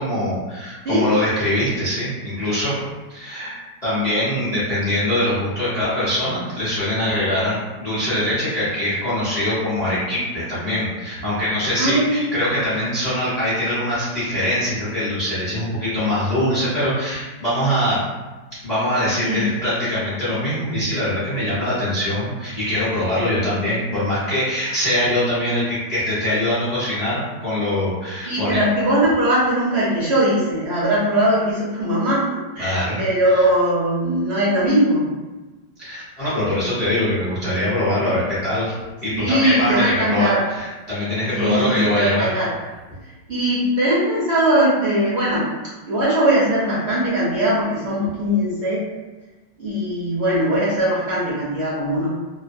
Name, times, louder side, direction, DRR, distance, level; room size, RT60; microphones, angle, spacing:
voice 1, 0.0-2.7 3.1-18.0 18.6-28.6 32.6-33.0 33.3-33.5 35.8-38.7 39.0-42.3, left 1 dB, 35° left, -12 dB, 0.6 m, -23 dB
voice 2, 11.8-12.3 19.2-19.5 28.2-32.2 32.6-35.1 39.1-40.5 41.3-42.5 43.3-45.4 45.8-48.8 49.6-52.1, right 1 dB, 65° right, -8 dB, 0.7 m, -20 dB
3.1 x 2.1 x 2.5 m, 1.2 s
omnidirectional pair, 1.9 m